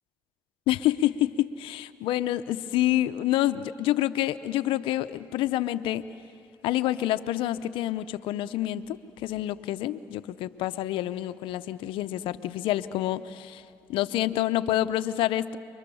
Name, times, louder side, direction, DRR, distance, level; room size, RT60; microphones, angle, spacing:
voice 1, 0.7-6.1 6.6-13.6 13.9-15.6, left 14 dB, 75° left, 12 dB, 0.8 m, -27 dB
29.0 x 24.0 x 7.1 m, 2.4 s
supercardioid pair, 80°, 9 cm